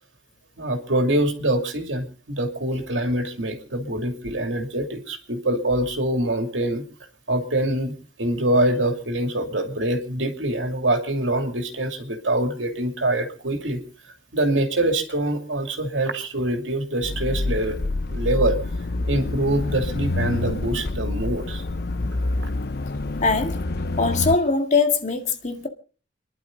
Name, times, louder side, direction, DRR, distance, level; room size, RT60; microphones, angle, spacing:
voice 1, 0.6-6.8 7.3-13.8 14.3-17.8 18.1-18.6 19.1-21.6, right 1 dB, 80° right, 2.8 m, -24 dB
sound 1, 17.0-24.4, left 2 dB, 55° left, 0.7 m, -27 dB
voice 2, 23.2-23.6 24.0-25.7, left 4 dB, 40° left, 2.0 m, -21 dB
29.5 x 11.5 x 3.9 m
head